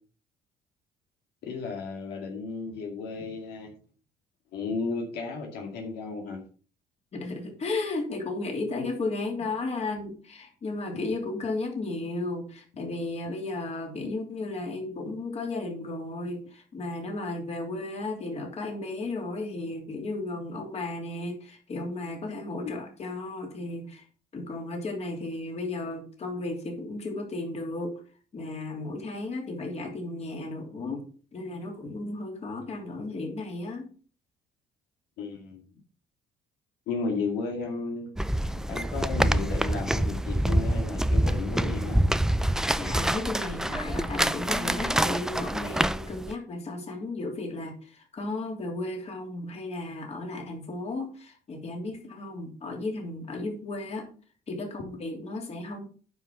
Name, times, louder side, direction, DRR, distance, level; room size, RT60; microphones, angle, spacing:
voice 1, 1.4-3.7 4.5-6.4 22.6-22.8 35.2-35.6 36.9-38.4 38.7-42.1, left 4 dB, 80° left, 1 dB, 2.2 m, -34 dB
voice 2, 7.1-24.0 24.3-28.0 28.3-31.0 31.3-33.9 42.7-54.1 54.5-55.8, left 2 dB, 40° left, 1 dB, 3.1 m, -34 dB
sound 1, 38.2-46.3, right 1 dB, 5° right, 0.4 m, -26 dB
9.4 x 5.6 x 5.5 m, 0.41 s
cardioid pair, 110°, 17 cm